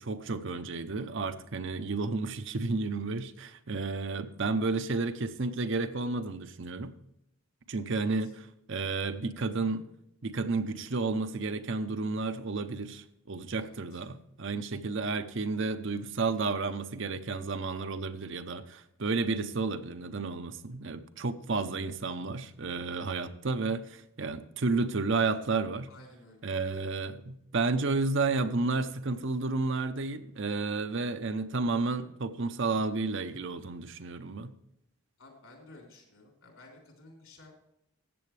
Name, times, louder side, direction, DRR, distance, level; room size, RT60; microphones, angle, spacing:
voice 1, 0.0-6.9 7.7-9.9 10.2-25.9 26.4-34.5, right 3 dB, 55° right, 0.7 m, -32 dB
voice 2, 8.0-8.3 13.6-14.0 25.9-26.4 35.2-37.5, left 2 dB, 70° left, 3.7 m, -54 dB
14.0 x 8.4 x 3.3 m
head